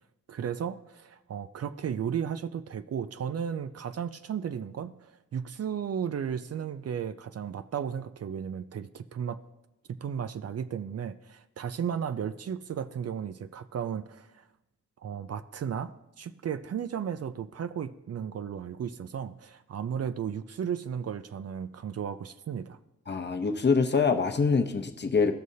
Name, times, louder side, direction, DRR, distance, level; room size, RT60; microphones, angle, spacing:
voice 1, 0.3-9.4 9.9-14.4 15.0-15.9 16.2-22.8, right 8 dB, 55° right, 11 dB, 0.4 m, -34 dB
voice 2, 23.1-25.3, left 5 dB, 35° left, 6 dB, 0.7 m, -25 dB
15.5 x 6.3 x 2.7 m, 0.99 s
wide cardioid pair, 110°, 30 cm